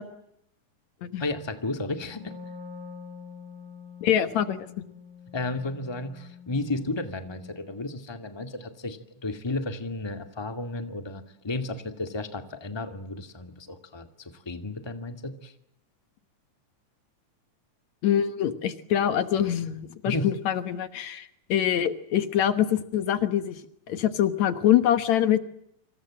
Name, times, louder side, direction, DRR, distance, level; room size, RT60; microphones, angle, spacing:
voice 1, 1.2-2.3 5.3-15.5 20.0-20.3, left 2 dB, 10° left, 7 dB, 1.8 m, -33 dB
Wind instrument woodwind instrument, 2.0-7.7, left 5 dB, 30° right, 3.1 m, -45 dB
voice 2, 4.0-4.7 18.0-23.6 23.9-25.4, left 10 dB, 70° left, 11 dB, 2.5 m, -24 dB
28.0 x 26.5 x 7.7 m, 0.75 s
omnidirectional pair, 3.5 m